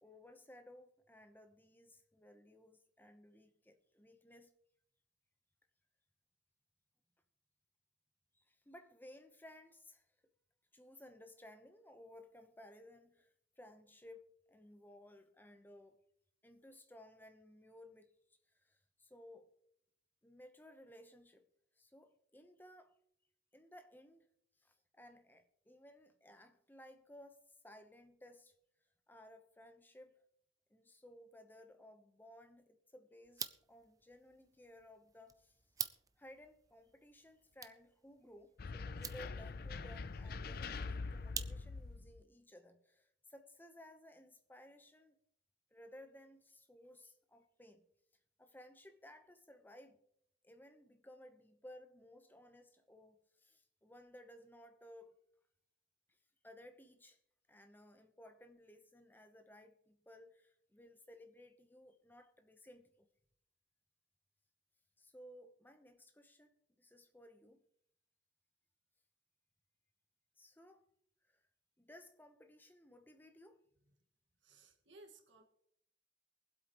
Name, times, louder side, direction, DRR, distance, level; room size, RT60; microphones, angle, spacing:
voice 1, 0.0-4.5 8.3-10.1 10.7-13.3 13.6-16.0 16.4-18.1 18.5-19.5 20.2-21.4 21.8-22.9 23.5-24.3 24.6-28.5 29.1-30.2 30.7-35.6 36.2-45.2 45.7-47.8 48.4-50.0 50.4-55.2 56.4-57.2 57.5-63.1 65.0-67.6 70.4-70.9 71.3-71.4 71.8-73.6, left 1 dB, 10° left, 0.9 m, -59 dB
sound 1, 33.2-42.0, right 7 dB, 20° right, 0.5 m, -49 dB
sound 2, 38.6-42.2, left 4 dB, 55° left, 0.5 m, -44 dB
voice 2, 74.4-75.4, right 2 dB, 75° right, 1.8 m, -60 dB
23.5 x 8.1 x 3.1 m
head